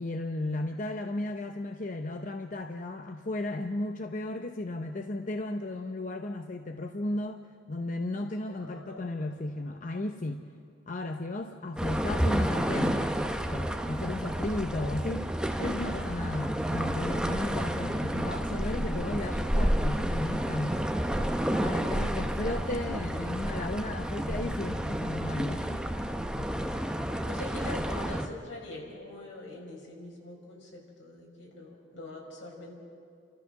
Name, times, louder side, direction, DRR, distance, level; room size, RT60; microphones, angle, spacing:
voice 1, 0.0-7.4 7.7-10.5 10.9-20.9 21.6-25.8, left 2 dB, 45° left, 5 dB, 0.7 m, -35 dB
voice 2, 8.5-9.7 21.6-22.0 22.4-22.7 26.5-32.7, left 2 dB, 80° left, -2 dB, 5.5 m, -44 dB
sound 1, 11.8-28.3, equal, 5° right, 0.8 m, -30 dB
30.0 x 13.5 x 6.6 m, 2.4 s
head